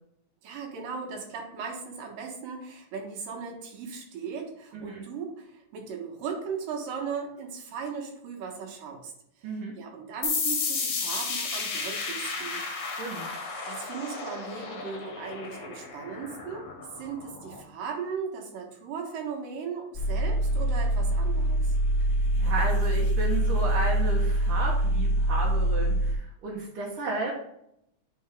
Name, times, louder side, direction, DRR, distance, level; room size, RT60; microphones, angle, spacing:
voice 1, 0.4-9.1 9.4-12.6 12.9-13.2 13.7-21.8, right 6 dB, 80° right, 2 dB, 3.0 m, -37 dB
voice 2, 9.4-9.7 12.7-13.4 22.4-27.4, right 2 dB, 60° right, -3 dB, 1.6 m, -33 dB
sound 1, 10.2-17.6, left 4 dB, 60° left, 1.7 m, -33 dB
sound 2, 19.9-26.1, right 1 dB, 40° left, 0.8 m, -24 dB
9.3 x 4.4 x 3.7 m, 0.76 s
omnidirectional pair, 3.9 m